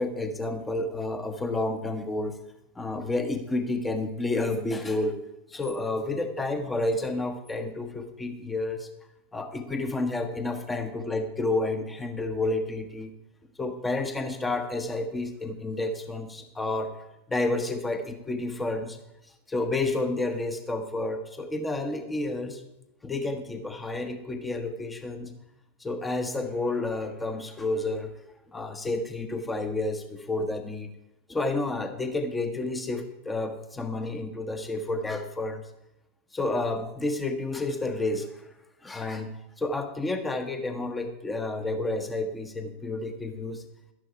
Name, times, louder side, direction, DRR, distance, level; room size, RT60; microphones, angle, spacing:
voice 1, 0.0-2.4 2.7-5.2 5.5-8.9 9.3-13.1 13.6-16.9 17.3-19.0 19.5-22.6 23.0-25.3 25.8-28.1 28.5-30.9 31.3-35.6 36.3-38.5 38.8-39.3 39.6-43.6, left 2 dB, 10° left, 7 dB, 1.1 m, -30 dB
12.5 x 11.0 x 4.7 m, 0.91 s
figure-of-eight pair, 90°, 0 cm